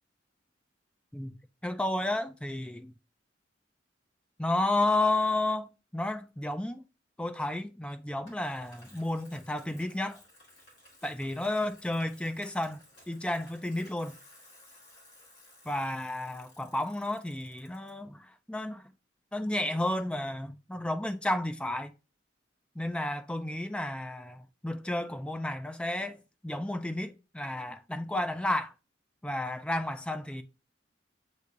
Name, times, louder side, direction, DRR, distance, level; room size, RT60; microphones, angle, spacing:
voice 1, 1.1-2.9 4.4-6.8 7.2-10.2 11.0-14.2 15.7-18.8 19.3-21.9 22.8-26.2 26.4-28.7 29.2-30.4, left 1 dB, 5° left, 0.3 m, -32 dB
Bicycle, 8.3-17.9, left 1 dB, 60° left, 2.1 m, -57 dB
7.9 x 2.8 x 2.4 m
head